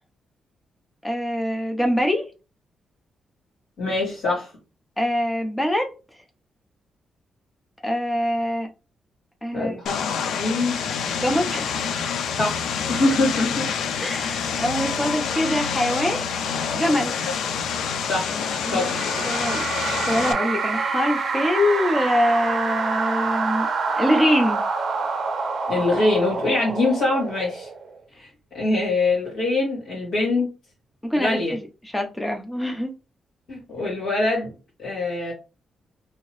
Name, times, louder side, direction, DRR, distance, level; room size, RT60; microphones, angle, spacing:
voice 1, 1.0-2.3 5.0-5.9 7.8-8.7 9.4-9.7 11.2-11.7 14.0-16.3 16.7-17.1 18.6-23.7 24.0-24.6 31.0-32.9, equal, 5° left, 0.6 m, -24 dB
voice 2, 3.8-4.5 9.5-9.9 10.4-10.8 12.4-13.7 17.2-17.3 18.1-18.3 18.7-19.0 25.7-27.7 28.2-28.3 28.5-30.5 31.2-31.5 33.5-34.5 34.8-35.3, left 2 dB, 70° left, 2.0 m, -23 dB
Vehicle, 9.9-20.3, left 6 dB, 85° left, 0.4 m, -27 dB
sound 1, 18.3-27.9, right 4 dB, 40° right, 0.6 m, -27 dB
2.8 x 2.8 x 3.0 m
wide cardioid pair, 165°, 0 cm